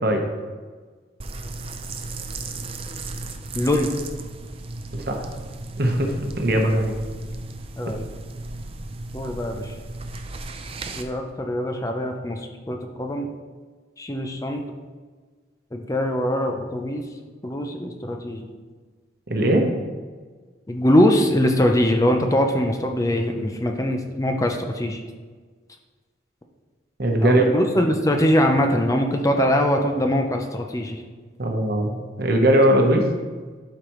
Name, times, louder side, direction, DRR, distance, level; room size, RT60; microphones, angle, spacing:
sound 1, 1.2-11.0, right 2 dB, 30° right, 0.5 m, -35 dB
voice 1, 3.5-3.9 7.8-8.1 9.1-9.7 10.9-13.3 14.0-14.6 15.7-17.0 17.4-18.5 20.7-25.0 27.2-31.0, left 1 dB, 15° left, 3 dB, 0.5 m, -22 dB
voice 2, 5.8-6.9 19.3-19.7 27.0-27.4 31.4-33.0, right 1 dB, 55° right, 2 dB, 1.0 m, -20 dB
11.5 x 5.0 x 3.1 m, 1.5 s
head